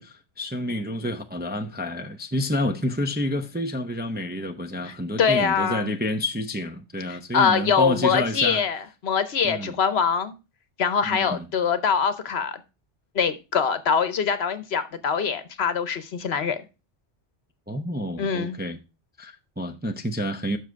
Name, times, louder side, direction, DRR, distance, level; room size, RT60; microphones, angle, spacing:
voice 1, 0.0-8.6 9.4-9.7 11.2-11.4 17.7-18.8 19.2-20.6, left 1 dB, 10° right, 0.5 m, -29 dB
voice 2, 4.8-6.0 7.1-10.3 10.8-12.6 13.1-16.6 18.2-18.6, left 6 dB, 65° left, 1.1 m, -24 dB
7.4 x 6.4 x 4.6 m
omnidirectional pair, 1.2 m